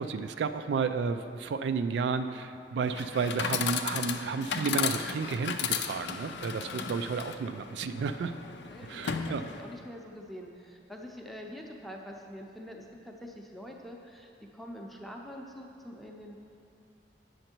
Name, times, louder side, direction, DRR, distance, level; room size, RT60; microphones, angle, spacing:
voice 1, 0.0-8.3 8.9-9.4, right 5 dB, 75° right, 10 dB, 0.3 m, -32 dB
Chatter / Coin (dropping), 2.8-9.8, left 7 dB, 75° left, 0.4 m, -35 dB
voice 2, 6.4-6.8 8.7-16.3, equal, ahead, 0 dB, 0.6 m, -45 dB
8.6 x 6.5 x 4.5 m, 2.5 s
head